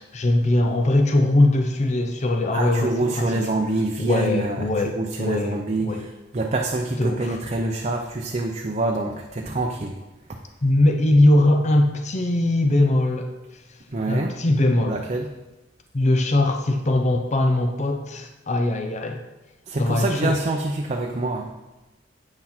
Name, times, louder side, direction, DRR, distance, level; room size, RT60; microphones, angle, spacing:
voice 1, 0.0-3.5 4.0-6.1 7.0-7.4 10.6-13.3 14.1-15.0 15.9-19.2 19.8-20.4, left 1 dB, 35° left, 4 dB, 0.6 m, -21 dB
voice 2, 2.5-10.0 13.9-14.4 14.9-15.3 19.7-21.5, right 2 dB, 35° right, 1 dB, 0.6 m, -26 dB
8.7 x 6.1 x 4.3 m, 1.1 s
head